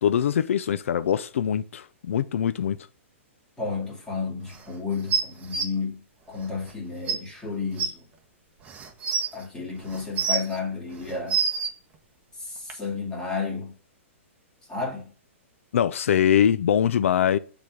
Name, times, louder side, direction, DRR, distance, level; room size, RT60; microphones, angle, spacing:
voice 1, 0.0-2.8 15.7-17.4, left 9 dB, 75° left, 0.4 m, -23 dB
voice 2, 3.6-6.0 6.3-8.0 9.3-11.4 12.4-13.8 14.7-15.1, left 4 dB, 10° left, 2.4 m, -32 dB
sound 1, 5.1-5.6 6.7-6.8 7.1-7.2 7.8-7.9 8.7-9.3 9.9-10.6 11.0-11.7 12.7-12.8, right 6 dB, 20° right, 1.1 m, -25 dB
6.5 x 3.9 x 4.6 m
hypercardioid pair, 145°, 7 cm